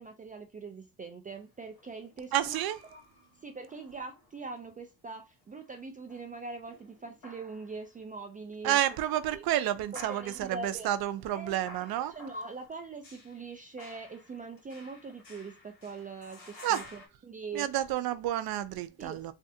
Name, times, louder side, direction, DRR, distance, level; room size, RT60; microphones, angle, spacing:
voice 1, 0.0-2.6 2.9-3.0 3.4-8.8 9.3-9.4 10.1-10.9 11.3-11.6 12.1-17.7 19.0-19.3, right 4 dB, 25° right, 0.3 m, -42 dB
sound 1, 1.3-4.8 5.4-8.0 8.6-9.5 9.9-17.1, left 1 dB, 60° left, 1.7 m, -53 dB
voice 2, 2.3-2.8 8.6-12.1 16.6-16.9 17.5-19.3, right 12 dB, 70° right, 0.6 m, -30 dB
3.3 x 2.4 x 2.7 m
cardioid pair, 120°, 38 cm